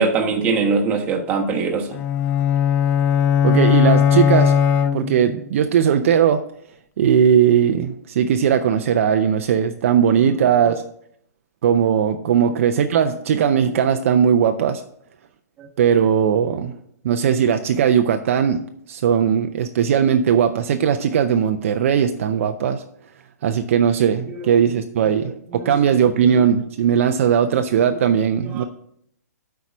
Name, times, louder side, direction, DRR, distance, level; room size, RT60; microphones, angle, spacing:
voice 1, 0.0-2.0 15.6-15.7 24.3-24.4 25.5-25.7 28.4-28.6, right 4 dB, 20° right, 1 dB, 1.2 m, -22 dB
sound 1, 1.9-5.5, left 8 dB, 20° left, 0.3 m, -18 dB
voice 2, 3.4-4.5 4.9-6.4 7.0-10.8 11.6-14.8 15.8-16.7 17.0-22.8 23.4-28.6, right 8 dB, 50° right, 7 dB, 0.6 m, -18 dB
8.1 x 4.7 x 6.1 m, 0.68 s
hypercardioid pair, 145°, 9 cm